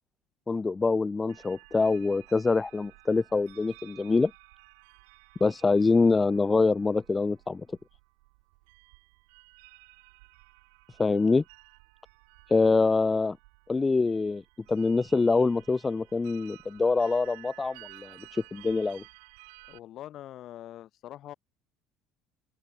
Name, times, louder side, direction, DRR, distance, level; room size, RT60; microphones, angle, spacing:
voice 1, 0.5-4.3 5.4-7.7 11.0-11.4 12.5-13.4 13.7-14.4 14.7-19.0, left 3 dB, 20° left, 0.3 m, -25 dB
sound 1, 1.3-19.8, right 33 dB, 85° right, 5.5 m, -54 dB
voice 2, 19.7-21.3, left 12 dB, 55° left, 5.3 m, -43 dB
open air
supercardioid pair, 100°, 0 cm